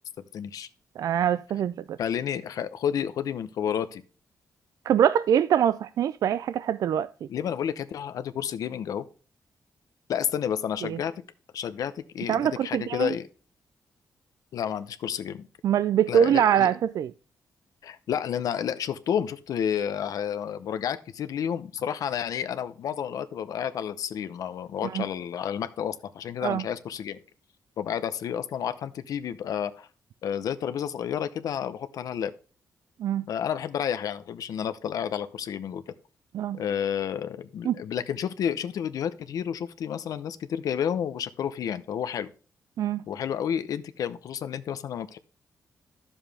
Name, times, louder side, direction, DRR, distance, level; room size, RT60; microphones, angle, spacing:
voice 1, 0.3-0.7 2.0-4.0 7.3-9.1 10.1-11.1 11.5-13.3 14.5-15.5 16.1-16.7 17.8-27.2 27.8-29.9 30.2-32.3 33.3-35.8 36.5-42.3 43.1-45.2, left 8 dB, 80° left, 0.7 m, -30 dB
voice 2, 1.0-2.0 4.9-7.1 10.8-11.0 12.3-13.1 15.6-17.1 24.9-25.0 26.4-26.6 33.0-33.3 36.3-36.6 37.6-37.7 42.8-43.0, right 9 dB, 75° right, 0.3 m, -24 dB
11.0 x 7.1 x 3.4 m
wide cardioid pair, 130°, 6 cm